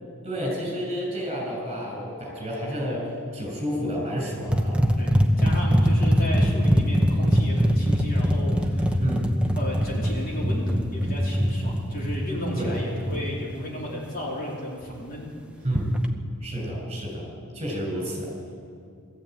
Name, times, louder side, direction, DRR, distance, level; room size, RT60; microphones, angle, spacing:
voice 1, 0.2-4.8 9.0-9.3 12.5-12.7 15.6-15.9 16.4-17.3 17.5-18.3, equal, 25° right, -1 dB, 6.3 m, -30 dB
sound 1, 4.5-13.3 15.7-16.1, equal, 5° right, 1.0 m, -22 dB
voice 2, 5.0-9.0 9.6-15.3, equal, 40° left, -4 dB, 4.1 m, -34 dB
21.0 x 14.0 x 9.2 m, 2.4 s
head